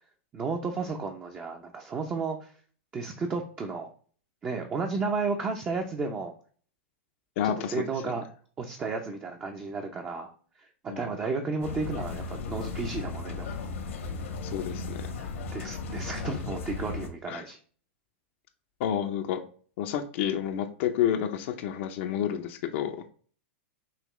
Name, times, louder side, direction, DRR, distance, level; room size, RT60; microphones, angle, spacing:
voice 1, 0.3-2.5 2.9-3.9 4.4-6.3 7.4-8.2 8.6-10.3 10.6-13.6 15.5-17.6, right 4 dB, 20° right, 3 dB, 0.6 m, -33 dB
voice 2, 7.4-8.1 10.9-11.1 14.4-15.1 17.3-17.4 18.8-19.4 19.8-22.9, left 9 dB, 60° left, 4 dB, 0.6 m, -30 dB
sound 1, 11.6-17.1, left 4 dB, 80° left, 1.3 m, -36 dB
5.6 x 2.9 x 3.1 m, 0.44 s
hypercardioid pair, 125°, 7 cm